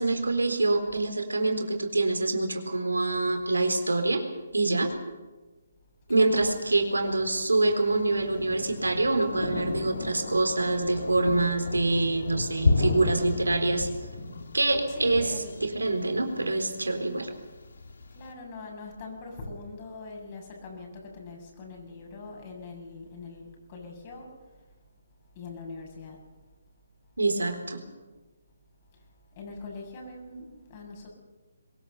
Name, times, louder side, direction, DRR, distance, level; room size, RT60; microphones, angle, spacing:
voice 1, 0.0-4.2 4.5-4.9 6.1-13.9 14.5-17.3 27.2-27.8, right 2 dB, 85° right, 5 dB, 3.9 m, -25 dB
voice 2, 6.1-6.6 14.9-15.5 18.1-24.3 25.4-26.2 29.4-31.1, left 3 dB, 35° left, 1 dB, 7.5 m, -42 dB
Thunder, 6.4-18.3, left 3 dB, 70° left, 2.8 m, -33 dB
22.5 x 21.0 x 7.1 m, 1.2 s
figure-of-eight pair, 140°, 0 cm